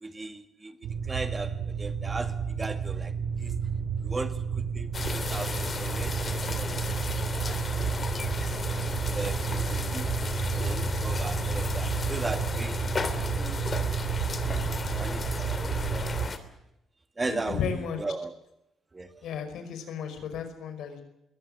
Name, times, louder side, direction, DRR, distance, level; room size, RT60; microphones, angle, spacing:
voice 1, 0.0-3.1 3.4-3.5 4.0-7.0 7.4-7.6 8.7-10.1 10.5-12.9 13.4-13.6 14.2-14.7 15.0-15.9 17.2-18.4 18.9-19.1, right 3 dB, 25° right, 2.0 m, -37 dB
sound 1, 0.8-16.3, right 7 dB, 85° right, 4.4 m, -31 dB
sound 2, 4.9-16.4, left 4 dB, 35° left, 3.0 m, -34 dB
voice 2, 17.3-18.0 19.2-21.0, left 7 dB, 75° left, 5.3 m, -33 dB
22.5 x 17.0 x 8.1 m
cardioid pair, 90°, 0 cm